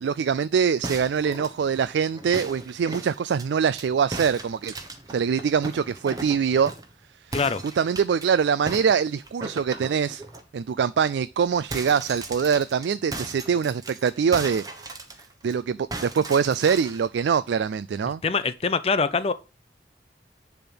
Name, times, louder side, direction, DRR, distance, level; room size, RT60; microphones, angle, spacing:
voice 1, 0.0-4.7 5.1-6.7 7.3-7.4 7.8-10.2 10.5-14.9 15.4-18.2, right 6 dB, 85° right, 0.3 m, -24 dB
sound 1, 0.8-3.9 4.1-6.9 7.3-8.3 8.7-10.4 10.8-11.0 11.3-15.5 15.9-17.1, right 2 dB, 20° right, 1.2 m, -37 dB
voice 2, 7.3-7.6 18.2-19.3, left 4 dB, 35° left, 0.5 m, -24 dB
10.5 x 3.6 x 5.9 m
head